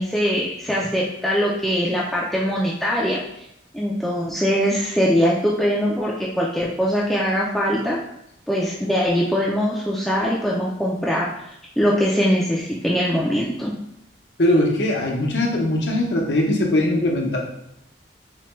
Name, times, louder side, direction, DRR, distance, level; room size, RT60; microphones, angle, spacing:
voice 1, 0.0-3.2 3.7-8.0 8.5-11.3 11.8-13.7, equal, ahead, -5 dB, 0.3 m, -22 dB
voice 2, 14.4-17.4, left 1 dB, 80° left, -1 dB, 0.8 m, -20 dB
4.4 x 2.2 x 3.0 m, 0.77 s
head